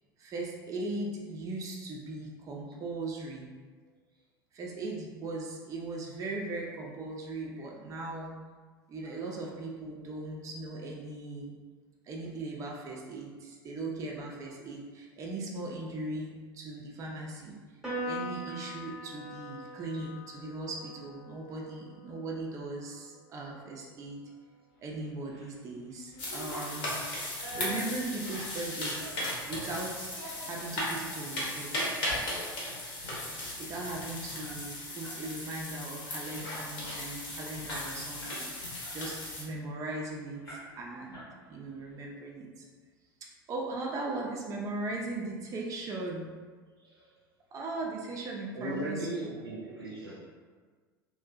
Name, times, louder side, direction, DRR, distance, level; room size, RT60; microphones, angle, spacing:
voice 1, 0.2-3.5 4.5-8.3 8.9-11.5 12.0-17.6 18.0-24.2 24.8-27.0 27.5-29.2 29.5-30.1 30.4-31.7 33.6-41.2 41.5-42.6 43.5-46.3 47.5-49.0, right 2 dB, 25° right, -1 dB, 0.4 m, -38 dB
voice 2, 7.3-7.7 9.0-9.2 18.5-18.6 19.6-20.0 46.8-47.2 48.5-50.2, right 1 dB, 85° right, -5 dB, 0.6 m, -39 dB
Piano, 17.8-24.5, equal, 5° right, 0.8 m, -43 dB
sound 1, 25.0-25.5 25.9-29.5 30.0-30.9 31.4-31.5 31.9-32.2 32.5-32.6 32.9-35.2 35.5-35.7 36.1-36.5 37.0-37.1 37.3-38.5 38.8-40.0 40.4-40.9 41.1-41.8, equal, 80° left, 1.0 m, -47 dB
sound 2, 26.2-39.4, left 1 dB, 45° left, 0.8 m, -37 dB
2.5 x 2.1 x 2.3 m, 1.5 s
figure-of-eight pair, 75°, 12 cm